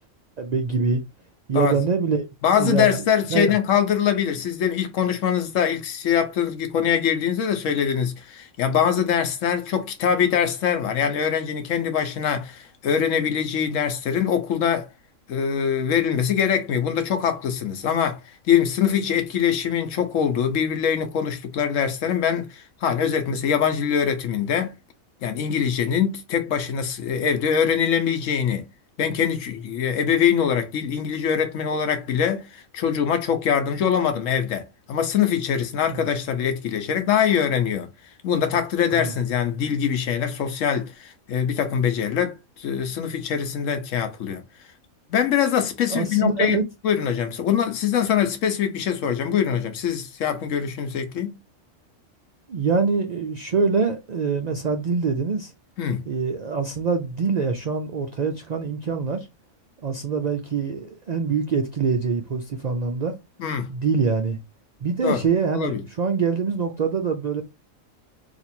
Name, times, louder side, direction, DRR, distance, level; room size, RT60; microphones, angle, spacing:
voice 1, 0.4-1.0 1.5-2.3 2.6-3.0 3.3-3.6 35.9-36.0 38.9-39.1 45.9-46.6 52.5-55.5 56.1-59.3 59.8-63.2 63.7-64.4 64.8-67.4, right 5 dB, 80° right, 0.3 m, -24 dB
voice 2, 2.4-14.9 15.3-18.2 18.4-24.7 25.2-28.6 29.0-37.9 38.2-44.4 45.1-46.6 46.8-51.3 55.8-56.0 63.4-63.7 65.0-65.2 65.5-65.8, left 8 dB, 75° left, 1.1 m, -23 dB
2.9 x 2.6 x 4.1 m
omnidirectional pair, 1.4 m